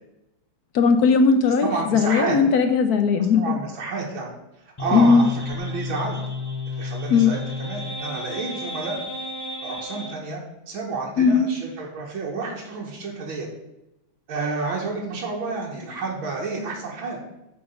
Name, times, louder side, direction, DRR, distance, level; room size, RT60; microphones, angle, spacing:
voice 1, 0.7-3.6 4.9-5.3 7.1-7.3 11.2-11.5, left 5 dB, 65° left, 7 dB, 1.0 m, -18 dB
voice 2, 1.6-2.4 3.4-4.3 4.8-6.2 6.7-9.0 9.6-10.4 10.7-13.5 14.3-17.2, right 4 dB, 80° right, -2 dB, 2.2 m, -30 dB
sound 1, 4.8-10.2, left 2 dB, 35° left, 0.3 m, -32 dB
7.1 x 6.3 x 5.4 m, 0.91 s
omnidirectional pair, 2.2 m